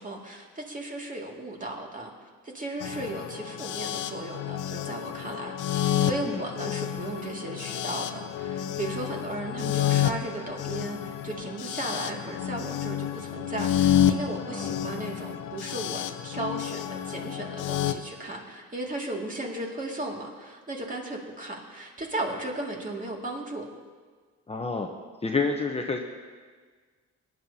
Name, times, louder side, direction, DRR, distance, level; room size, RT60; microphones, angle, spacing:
voice 1, 0.0-23.6, right 2 dB, 25° right, -1 dB, 2.3 m, -36 dB
sound 1, 2.8-17.9, left 10 dB, 90° left, 0.7 m, -29 dB
voice 2, 24.5-24.9 25.2-26.0, left 4 dB, 20° left, 2 dB, 0.9 m, -28 dB
19.0 x 10.5 x 2.8 m, 1.5 s
cardioid pair, 90°, 30 cm